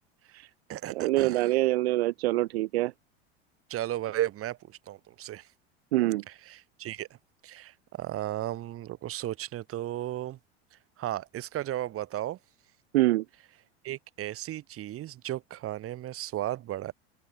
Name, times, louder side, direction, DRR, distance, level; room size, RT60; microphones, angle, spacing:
voice 1, 0.3-1.5 3.7-5.5 6.3-7.1 7.4-10.4 11.0-12.4 13.8-16.9, right 13 dB, 45° right, 5.3 m, -35 dB
voice 2, 0.9-2.9 5.9-6.2 12.9-13.2, right 17 dB, 75° right, 2.9 m, -25 dB
hypercardioid pair, 95°, 32 cm